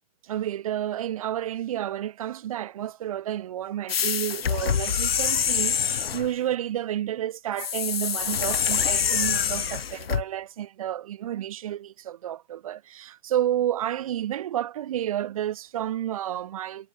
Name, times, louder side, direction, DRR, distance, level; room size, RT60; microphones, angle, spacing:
voice 1, 0.2-16.9, right 11 dB, 25° right, 4.6 m, -30 dB
sound 1, 3.9-6.3 7.6-10.2, left 8 dB, 50° left, 0.8 m, -25 dB
hypercardioid pair, 180°, 38 cm